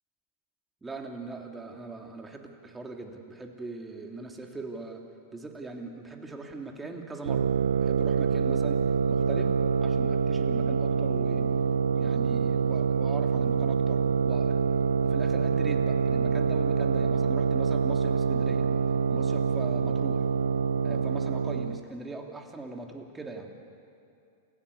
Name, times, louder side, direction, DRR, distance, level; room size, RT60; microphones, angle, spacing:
voice 1, 0.8-5.0 5.3-7.5 7.8-8.8 9.1-9.5 9.8-11.5 11.9-14.6 15.0-18.6 19.1-20.2 20.8-23.5, right 3 dB, 15° right, 2 dB, 3.1 m, -40 dB
sound 1, 7.3-21.8, right 6 dB, 85° right, 0.6 m, -26 dB
29.0 x 16.0 x 8.2 m, 2.5 s
hypercardioid pair, 105°, 0 cm